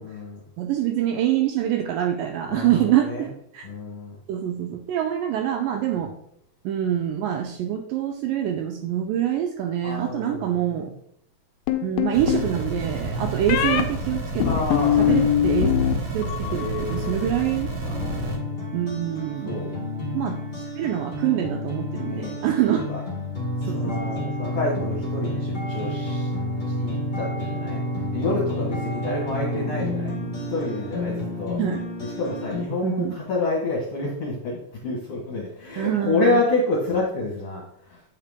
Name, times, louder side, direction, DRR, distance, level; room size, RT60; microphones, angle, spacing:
voice 1, 0.0-0.4 2.5-3.3 3.6-4.2 6.0-6.1 9.8-10.9 13.1-13.3 14.4-15.5 16.4-17.3 17.8-18.8 19.4-19.7 22.0-22.4 22.7-23.0 23.6-26.3 26.6-27.8 28.1-30.2 30.5-31.6 32.0-38.0, left 2 dB, 55° left, -4 dB, 1.9 m, -29 dB
voice 2, 0.6-3.3 3.5-3.6 4.3-6.1 6.7-10.9 11.8-14.5 15.0-15.7 16.1-17.7 18.7-19.7 20.1-22.9 23.7-24.0 24.2-24.3 31.6-31.8 32.8-33.1 35.8-36.4, right 11 dB, 85° right, 4 dB, 2.0 m, -25 dB
sound 1, 11.7-12.5 13.5-13.8 14.4-15.9 16.2-16.8, left 10 dB, 85° left, 2.3 m, -22 dB
sound 2, 12.1-18.4, right 1 dB, 60° right, 1.8 m, -30 dB
sound 3, 17.8-32.6, left 1 dB, 30° left, 0.9 m, -30 dB
8.0 x 4.8 x 3.6 m, 0.70 s
omnidirectional pair, 4.3 m